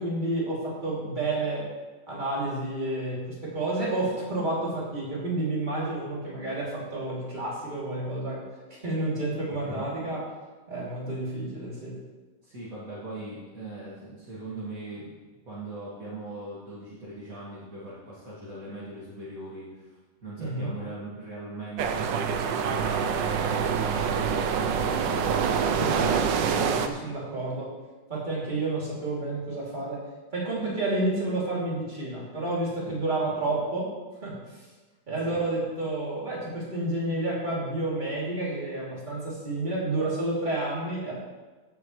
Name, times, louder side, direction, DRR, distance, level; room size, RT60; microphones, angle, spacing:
voice 1, 0.0-1.7 2.1-8.5 8.8-10.2 10.7-12.0 20.4-20.7 25.7-25.9 26.5-27.7 28.1-30.0 30.3-33.9 34.2-34.6 35.1-41.1, right 2 dB, 25° right, -7 dB, 3.1 m, -30 dB
voice 2, 12.4-15.1 15.5-25.8 35.2-35.4, right 2 dB, 50° right, -9 dB, 2.3 m, -40 dB
sound 1, 21.8-26.9, right 6 dB, 90° right, 1.4 m, -26 dB
15.5 x 7.2 x 3.2 m, 1.3 s
omnidirectional pair, 1.9 m